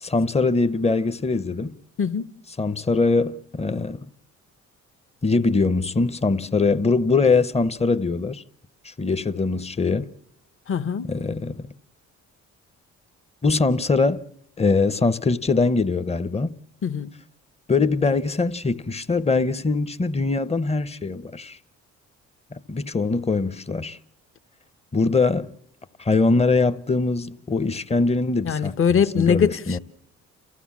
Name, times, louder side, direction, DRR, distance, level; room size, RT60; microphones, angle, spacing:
voice 1, 0.0-1.8 2.6-4.1 5.2-8.4 8.8-10.1 11.0-11.7 13.4-14.2 14.6-16.6 17.7-21.6 22.5-24.0 24.9-25.5 26.0-28.7 29.2-29.8, left 3 dB, 20° left, 0.8 m, -22 dB
voice 2, 10.7-11.1 16.8-17.1 28.5-29.8, left 7 dB, 45° left, 1.0 m, -22 dB
29.0 x 14.5 x 7.3 m
cardioid pair, 90°, 30 cm